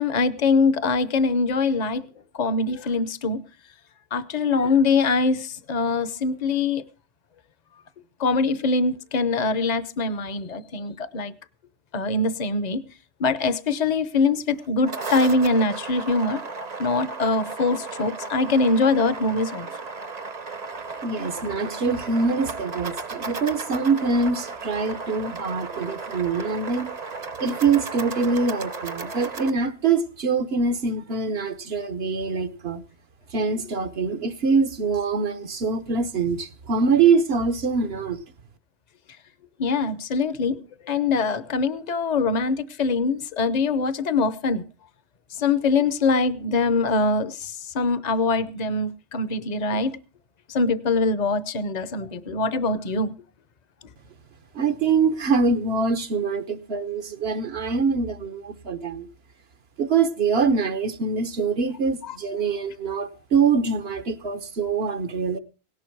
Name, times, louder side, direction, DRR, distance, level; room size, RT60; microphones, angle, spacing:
voice 1, 0.0-2.1 2.3-3.4 4.1-6.8 8.2-11.3 11.9-12.8 13.2-16.4 16.8-19.7 39.6-40.6 40.9-44.6 45.4-50.0 50.5-53.1, left 3 dB, 45° left, 0.9 m, -23 dB
sound 1, 14.6-29.5, right 4 dB, 40° right, 0.9 m, -35 dB
voice 2, 21.0-26.9 27.4-32.8 33.3-38.2 54.5-59.1 59.8-65.4, right 4 dB, 70° right, 1.3 m, -24 dB
17.5 x 11.5 x 4.6 m
omnidirectional pair, 1.1 m